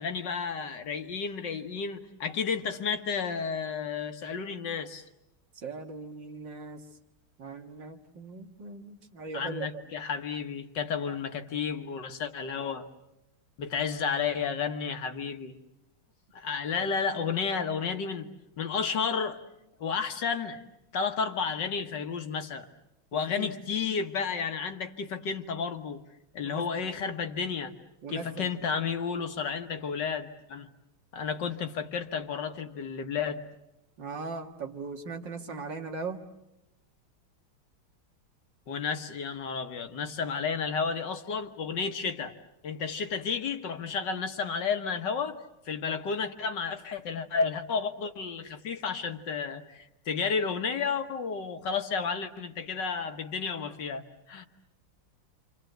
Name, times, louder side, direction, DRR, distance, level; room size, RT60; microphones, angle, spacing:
voice 1, 0.0-5.1 9.3-12.9 13.6-15.6 16.3-18.3 18.6-19.4 19.8-20.6 20.9-22.7 23.1-26.0 26.3-27.7 28.1-30.7 31.1-33.4 38.7-42.4 42.6-45.4 45.7-54.5, left 5 dB, 60° left, 7 dB, 1.8 m, -32 dB
voice 2, 5.6-6.8 7.4-9.7 16.8-16.9 23.1-23.5 26.4-26.9 28.0-28.5 34.0-36.2, right 4 dB, 60° right, 4 dB, 2.4 m, -39 dB
27.5 x 27.5 x 8.0 m, 0.91 s
omnidirectional pair, 2.2 m